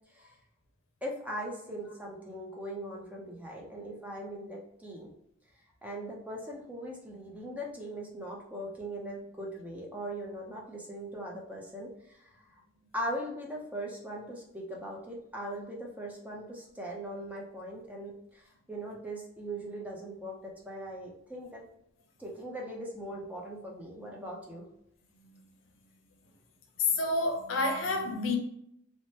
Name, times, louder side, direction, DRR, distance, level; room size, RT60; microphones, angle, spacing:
voice 1, 1.0-5.1 5.8-12.3 12.9-21.6 22.2-24.6, right 1 dB, 5° right, 0.5 m, -40 dB
voice 2, 26.8-28.4, left 3 dB, 80° left, 0.6 m, -28 dB
2.8 x 2.1 x 3.1 m
head